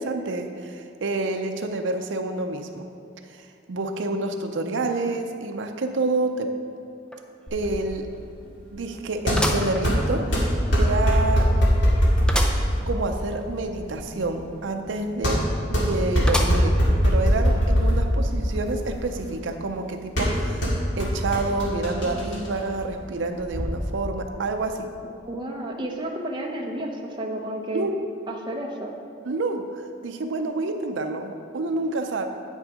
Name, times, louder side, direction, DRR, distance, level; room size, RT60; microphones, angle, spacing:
voice 1, 0.0-2.9 3.3-6.5 7.5-8.1 8.7-11.5 12.9-20.7 21.0-24.9 27.7-27.9 29.3-32.3, right 2 dB, 80° right, 6 dB, 0.5 m, -28 dB
sound 1, 7.1-7.2 7.6-7.7 9.3-10.4 10.9-11.0 12.3-12.7 13.1-13.2 13.4-13.5 16.3-16.9 17.5-17.6 18.5-18.6, equal, 5° left, 0.5 m, -28 dB
sound 2, 7.5-23.7, equal, 75° left, 2.0 m, -23 dB
voice 2, 25.0-27.9 28.3-28.9, right 1 dB, 25° right, 0 dB, 0.8 m, -31 dB
8.9 x 6.3 x 5.0 m, 2.5 s
head